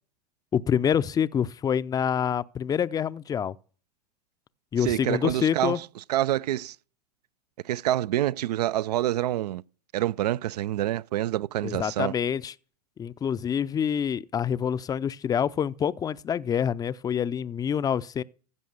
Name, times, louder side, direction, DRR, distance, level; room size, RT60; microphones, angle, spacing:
voice 1, 0.5-3.5 4.7-5.8 11.6-12.5 13.0-18.2, left 8 dB, 20° left, 0.4 m, -26 dB
voice 2, 4.8-6.8 7.6-9.6 9.9-12.1, right 13 dB, 80° right, 0.5 m, -27 dB
15.5 x 5.3 x 6.5 m
hypercardioid pair, 110°, 20 cm